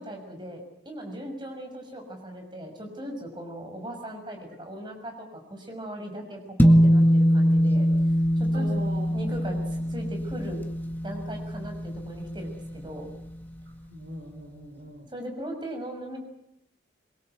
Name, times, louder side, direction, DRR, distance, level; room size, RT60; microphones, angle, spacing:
voice 1, 0.0-7.9 8.4-8.8 9.1-10.6 11.0-13.1 15.1-16.2, equal, 25° right, 3 dB, 6.3 m, -38 dB
sound 1, 6.6-13.2, equal, 10° left, 1.8 m, -23 dB
voice 2, 8.5-9.1 9.5-9.7 13.7-15.1, equal, 55° right, 5 dB, 4.5 m, -41 dB
24.5 x 23.0 x 7.9 m, 0.78 s
head